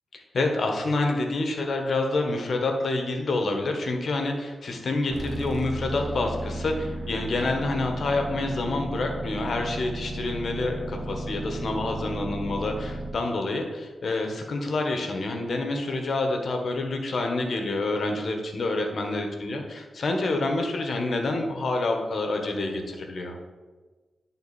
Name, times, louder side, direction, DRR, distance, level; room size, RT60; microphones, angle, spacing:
voice 1, 0.1-19.6 19.9-23.4, left 2 dB, 65° left, 3 dB, 1.3 m, -27 dB
sound 1, 5.1-13.1, right 1 dB, 45° right, 1.6 m, -34 dB
10.5 x 3.9 x 4.3 m, 1.3 s
cardioid pair, 55°, 0 cm